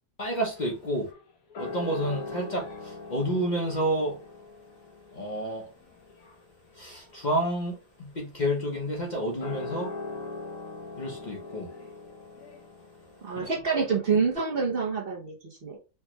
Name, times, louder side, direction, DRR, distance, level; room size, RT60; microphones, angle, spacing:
voice 1, 0.2-1.1 1.6-4.2 5.1-5.7 6.8-9.9 11.0-11.7 13.4-13.8, right 1 dB, 40° left, 0.8 m, -30 dB
sound 1, 0.5-14.3, left 3 dB, 75° left, 1.3 m, -42 dB
voice 2, 13.2-15.8, right 5 dB, 50° right, 0.9 m, -27 dB
4.4 x 2.3 x 3.0 m
omnidirectional pair, 1.5 m